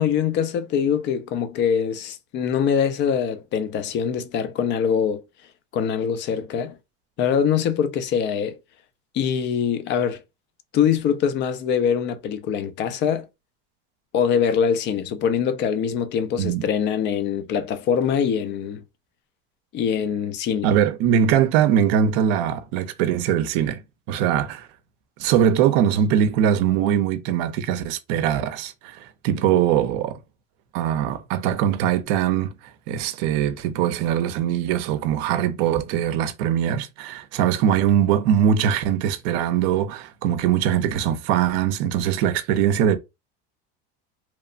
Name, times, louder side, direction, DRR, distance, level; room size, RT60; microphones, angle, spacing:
voice 1, 0.0-5.2 5.7-6.8 7.2-8.6 9.1-10.2 10.7-13.3 14.1-18.8 19.7-20.7, left 7 dB, 40° left, 0.4 m, -23 dB
voice 2, 20.6-23.8 24.1-24.7 25.2-30.2 30.7-32.5 32.9-43.0, right 9 dB, 60° right, 0.6 m, -21 dB
3.0 x 2.0 x 2.5 m
supercardioid pair, 135°, 29 cm